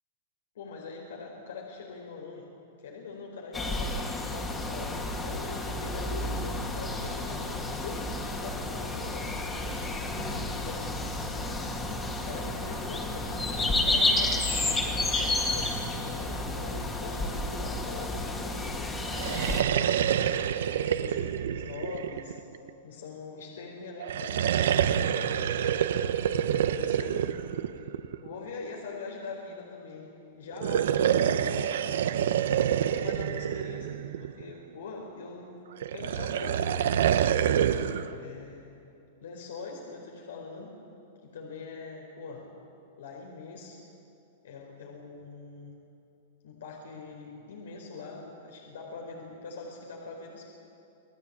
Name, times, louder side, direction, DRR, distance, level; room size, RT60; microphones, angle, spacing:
voice 1, 0.5-2.5 2.8-9.9 10.6-11.7 12.2-18.9 19.2-20.3 20.7-22.4 22.8-25.9 26.5-27.3 28.2-31.8 32.9-35.6 35.9-38.6 39.2-40.7 41.2-42.5 43.0-43.8 44.4-45.8 46.4-50.5, left 4 dB, 85° left, -1 dB, 4.6 m, -43 dB
sound 1, 3.5-19.6, left 2 dB, 10° left, 2.0 m, -31 dB
sound 2, 19.1-22.7 24.0-28.3 30.5-34.5 35.8-38.1, right 9 dB, 75° right, 1.0 m, -27 dB
27.5 x 18.5 x 8.7 m, 2.7 s
supercardioid pair, 165°, 0 cm